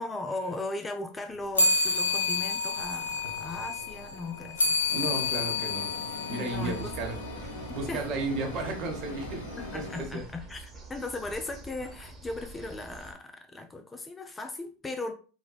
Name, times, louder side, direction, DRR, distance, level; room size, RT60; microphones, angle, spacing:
voice 1, 0.0-5.1 6.3-6.9 7.7-8.0 9.6-15.1, left 2 dB, 15° left, 0.4 m, -37 dB
sound 1, 1.5-7.4, left 3 dB, 90° left, 0.5 m, -29 dB
sound 2, 4.9-10.1, left 2 dB, 70° left, 1.2 m, -41 dB
voice 2, 4.9-7.2 7.7-9.4 9.7-10.3, right 2 dB, 50° right, 0.9 m, -34 dB
sound 3, 6.5-13.1, right 3 dB, 20° right, 1.1 m, -45 dB
4.0 x 2.2 x 2.3 m
hypercardioid pair, 90°, 0 cm